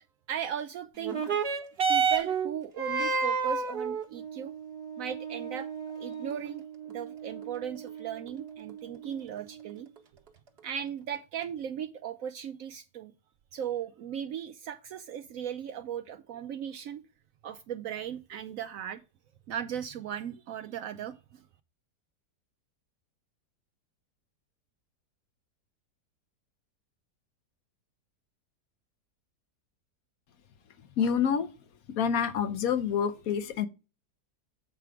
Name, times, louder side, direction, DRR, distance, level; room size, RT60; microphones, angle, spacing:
voice 1, 0.3-1.2 1.9-4.5 5.0-5.7 6.0-9.9 10.6-13.1 13.5-17.0 17.4-19.0 19.5-21.4, right 9 dB, 70° right, 0.8 m, -37 dB
sound 1, 1.0-10.0 10.8-10.9, right 6 dB, 45° right, 1.2 m, -32 dB
voice 2, 31.0-31.5 32.0-33.7, left 7 dB, 65° left, 1.0 m, -27 dB
7.6 x 4.6 x 4.8 m
omnidirectional pair, 1.8 m